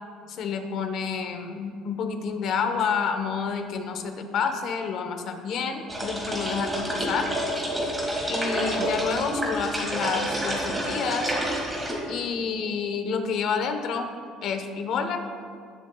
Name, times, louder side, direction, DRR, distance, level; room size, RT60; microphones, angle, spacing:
voice 1, 0.3-7.3 8.3-11.3 12.1-14.1 14.4-15.2, left 5 dB, 50° left, 6 dB, 0.9 m, -29 dB
sound 1, 5.9-11.9, right 1 dB, 10° right, 1.9 m, -28 dB
18.5 x 7.2 x 2.3 m, 2.2 s
cardioid pair, 150°, 0 cm